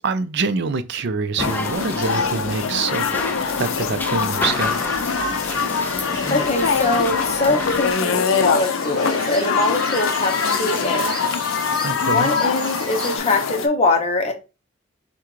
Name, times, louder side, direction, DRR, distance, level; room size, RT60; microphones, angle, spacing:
voice 1, 0.0-3.1 3.4-4.8 11.8-12.3, right 4 dB, 55° right, 0.5 m, -25 dB
sound 1, 1.4-13.7, left 6 dB, 70° left, 0.5 m, -23 dB
sound 2, 1.4-7.9, left 1 dB, 10° left, 0.4 m, -31 dB
sound 3, 4.5-13.2, right 2 dB, 20° right, 1.3 m, -35 dB
voice 2, 6.3-11.2 12.1-14.3, left 2 dB, 30° left, 0.8 m, -22 dB
5.7 x 2.2 x 3.1 m
head